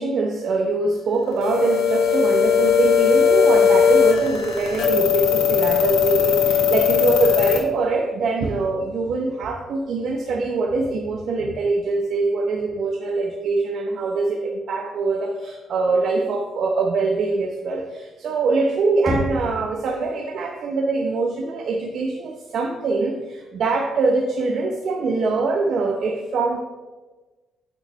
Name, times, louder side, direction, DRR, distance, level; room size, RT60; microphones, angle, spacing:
voice 1, 0.0-26.6, right 3 dB, 65° right, 1 dB, 0.8 m, -23 dB
sound 1, 1.4-7.6, left 7 dB, 85° left, 1.4 m, -18 dB
Knock, 19.1-20.0, left 1 dB, 15° right, 2.2 m, -28 dB
8.6 x 5.8 x 3.3 m, 1.3 s
cardioid pair, 90°, 0 cm